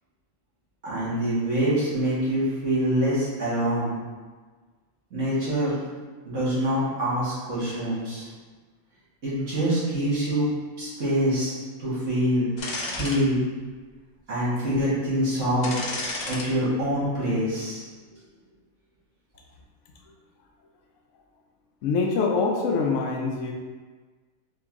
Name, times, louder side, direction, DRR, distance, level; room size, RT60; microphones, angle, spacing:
voice 1, 0.8-4.0 5.1-5.8 6.3-8.3 9.2-10.5 10.8-12.5 12.8-13.4 14.3-15.7 16.2-17.9, equal, 65° right, -10 dB, 1.9 m, -25 dB
sound 1, 12.6-13.2 13.7-13.8 15.6-16.5 16.8-17.0, left 2 dB, 55° left, 0.5 m, -31 dB
voice 2, 21.8-23.5, left 4 dB, 70° left, 1 dB, 0.9 m, -24 dB
4.5 x 2.9 x 3.5 m, 1.4 s
omnidirectional pair, 1.4 m